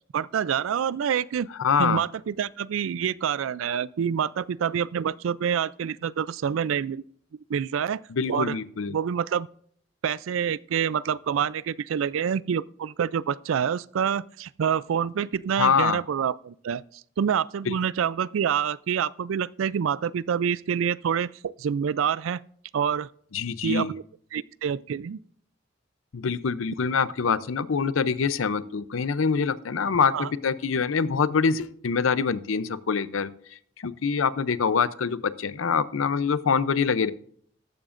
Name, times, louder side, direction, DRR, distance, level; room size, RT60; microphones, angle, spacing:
voice 1, 0.1-1.5 1.8-7.0 7.5-8.0 8.3-8.6 8.9-9.5 10.0-22.4 22.7-23.1 23.6-24.0 24.3-25.2 30.1-30.3, right 8 dB, 85° right, 0.4 m, -27 dB
voice 2, 1.6-2.0 8.1-8.9 15.6-16.0 17.7-17.8 23.3-23.9 26.1-37.1, left 5 dB, 90° left, 0.6 m, -25 dB
14.0 x 12.0 x 2.5 m
head